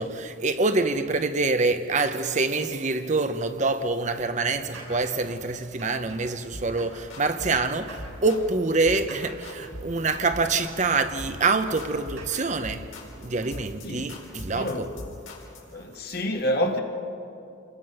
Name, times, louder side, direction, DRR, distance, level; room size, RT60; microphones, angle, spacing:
voice 1, 0.0-12.9 13.2-14.9, right 3 dB, 35° right, 0.8 m, -26 dB
sound 1, 4.0-13.9, right 1 dB, 90° right, 7.4 m, -48 dB
sound 2, 6.5-6.7 7.1-7.6 8.0-8.5 8.8-9.1 9.4-10.0 10.3-10.8 11.2-11.5 11.8-15.7, left 1 dB, 80° left, 4.0 m, -41 dB
voice 2, 14.5-14.9 15.7-16.8, equal, 50° left, 1.9 m, -28 dB
28.5 x 21.5 x 5.5 m
head